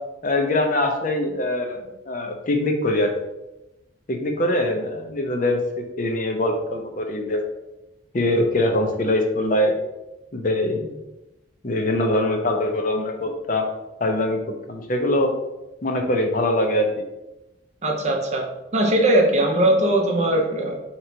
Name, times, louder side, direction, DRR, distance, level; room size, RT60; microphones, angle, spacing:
voice 1, 0.2-3.1 4.1-7.4 8.1-9.8 10.3-11.0 11.6-13.7 14.0-14.4 14.7-15.3 15.8-17.0, left 1 dB, 45° left, 3 dB, 0.6 m, -23 dB
voice 2, 17.8-20.8, right 1 dB, 35° right, 1 dB, 0.6 m, -20 dB
3.8 x 3.0 x 4.5 m, 0.95 s
head